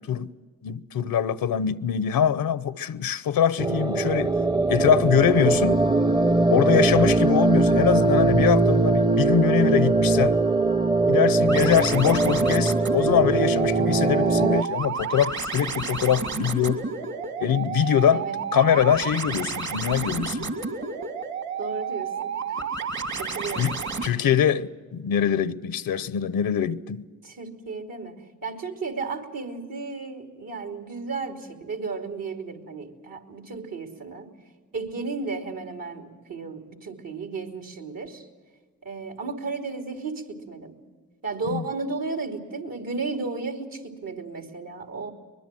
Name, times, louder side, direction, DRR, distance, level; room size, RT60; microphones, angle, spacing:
voice 1, 0.6-4.3 4.7-5.8 6.5-10.4 11.1-16.8 17.4-18.3 18.5-20.5 23.6-23.8 24.0-27.0 41.5-41.6, left 9 dB, 90° left, 0.8 m, -23 dB
sound 1, 3.6-14.6, right 3 dB, 15° right, 0.6 m, -21 dB
sound 2, 11.5-24.1, right 5 dB, 55° right, 2.5 m, -31 dB
voice 2, 21.6-22.7 23.2-23.7 24.2-24.3 27.2-34.3 34.7-38.3 38.8-40.7 41.2-45.1, right 4 dB, 75° right, 3.2 m, -34 dB
23.5 x 21.0 x 7.7 m
cardioid pair, 45°, 34 cm